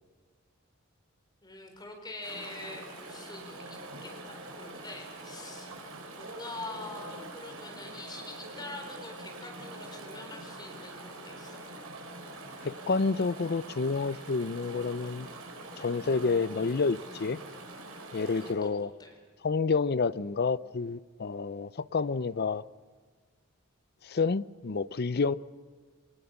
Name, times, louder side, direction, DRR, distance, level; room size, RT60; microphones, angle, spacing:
voice 1, 1.4-5.7 6.1-11.6 18.4-19.1, left 2 dB, 20° left, 4.4 m, -45 dB
Chatter / Stream, 2.2-18.5, right 2 dB, 85° right, 4.8 m, -44 dB
voice 2, 12.6-15.3 15.8-17.4 18.1-18.9 19.4-22.6 24.0-25.3, left 4 dB, 50° left, 0.5 m, -29 dB
23.0 x 19.5 x 7.1 m
head